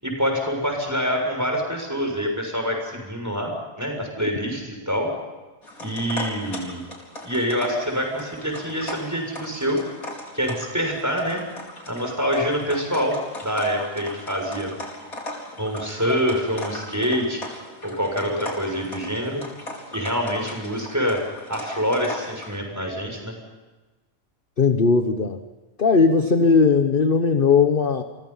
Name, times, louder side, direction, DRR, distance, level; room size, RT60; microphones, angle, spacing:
voice 1, 0.0-5.1 5.8-6.8 7.2-9.8 10.3-11.4 11.9-13.2 13.4-14.7 15.6-17.4 17.8-19.4 19.9-21.2 21.5-23.3, equal, 10° right, 2 dB, 6.9 m, -26 dB
sound 1, 5.6-22.6, left 1 dB, 85° left, 5.0 m, -38 dB
voice 2, 24.6-25.4 25.8-28.0, left 5 dB, 40° left, 7 dB, 1.3 m, -18 dB
29.5 x 24.0 x 5.7 m, 1.2 s
omnidirectional pair, 1.5 m